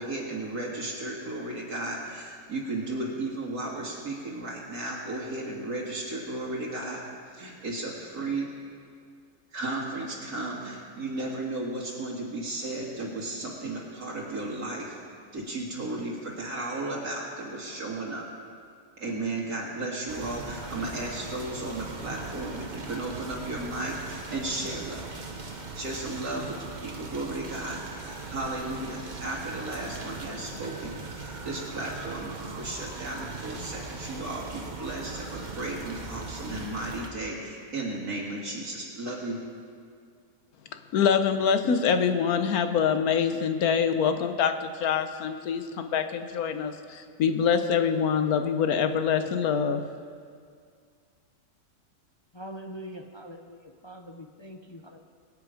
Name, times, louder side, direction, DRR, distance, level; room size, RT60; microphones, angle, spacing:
voice 1, 0.0-7.0 7.3-8.5 9.5-15.0 15.3-18.2 19.0-25.1 25.7-39.4, right 2 dB, 75° right, -4 dB, 2.4 m, -34 dB
sound 1, 20.1-37.1, right 3 dB, 30° right, 1.1 m, -40 dB
voice 2, 40.9-49.8, left 7 dB, 70° left, 8 dB, 1.3 m, -25 dB
voice 3, 52.3-55.0, equal, 30° left, 3 dB, 0.5 m, -43 dB
22.5 x 8.3 x 5.0 m, 2.2 s
omnidirectional pair, 1.6 m